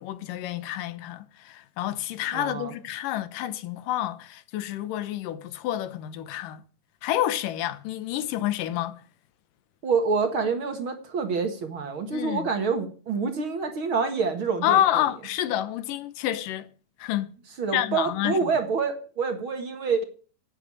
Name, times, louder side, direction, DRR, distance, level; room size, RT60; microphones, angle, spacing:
voice 1, 0.0-6.6 7.0-9.0 12.1-12.5 14.6-16.7 17.0-17.3 17.7-18.4, left 12 dB, 85° left, 2.6 m, -28 dB
voice 2, 2.3-2.7 9.8-15.0 17.6-20.0, right 5 dB, 45° right, 2.1 m, -27 dB
11.0 x 9.1 x 9.8 m
omnidirectional pair, 3.7 m